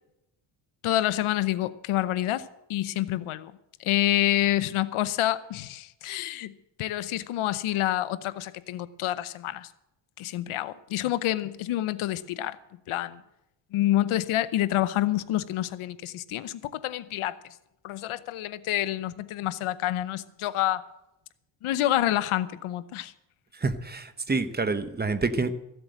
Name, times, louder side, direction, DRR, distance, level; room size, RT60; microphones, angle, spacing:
voice 1, 0.8-3.5 3.8-9.7 10.2-12.6 12.9-13.2 13.7-17.4 17.8-20.8 21.6-23.1, left 14 dB, 75° left, 15 dB, 0.8 m, -28 dB
voice 2, 23.6-25.6, right 3 dB, 20° right, 11 dB, 0.9 m, -27 dB
14.5 x 7.9 x 7.9 m, 0.87 s
cardioid pair, 100°, 50 cm